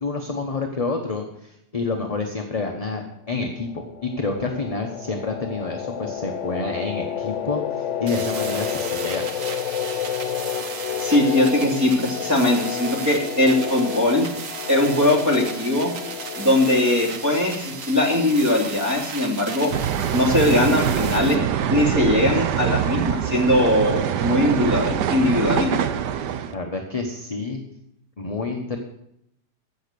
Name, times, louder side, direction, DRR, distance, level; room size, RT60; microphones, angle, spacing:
voice 1, 0.0-3.7 4.0-9.3 26.5-27.6 28.2-28.8, left 3 dB, 25° left, 2 dB, 1.0 m, -28 dB
sound 1, 3.6-18.2, left 9 dB, 60° left, 0.9 m, -31 dB
sound 2, 8.1-21.4, right 5 dB, 55° right, 1.4 m, -35 dB
voice 2, 11.0-14.3 14.7-15.9 16.4-19.7 20.1-21.4 21.7-25.7, left 1 dB, 10° right, -1 dB, 2.7 m, -20 dB
sound 3, 19.7-26.5, right 9 dB, 85° right, 1.4 m, -24 dB
15.0 x 6.5 x 6.8 m, 0.76 s
omnidirectional pair, 1.8 m